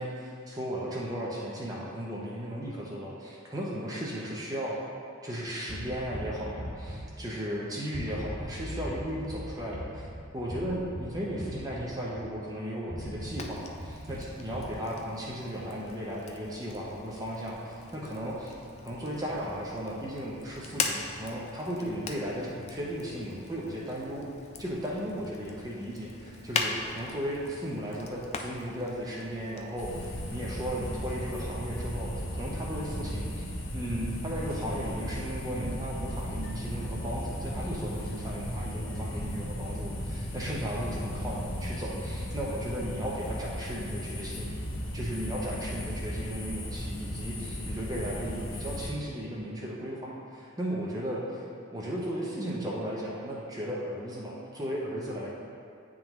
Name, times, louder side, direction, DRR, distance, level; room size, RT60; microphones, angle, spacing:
voice 1, 0.0-4.8 5.2-10.1 10.3-18.6 18.8-24.3 24.6-33.5 33.7-44.5 44.9-51.4 51.7-55.3, equal, 20° right, -4 dB, 0.6 m, -35 dB
sound 1, 5.7-7.6 7.9-12.4 12.9-14.8, equal, 60° right, 1.5 m, -40 dB
Fire, 13.3-31.4, left 4 dB, 30° left, 0.3 m, -41 dB
sound 2, 29.8-48.9, equal, 80° left, 0.9 m, -36 dB
9.0 x 3.7 x 3.0 m, 2.3 s
head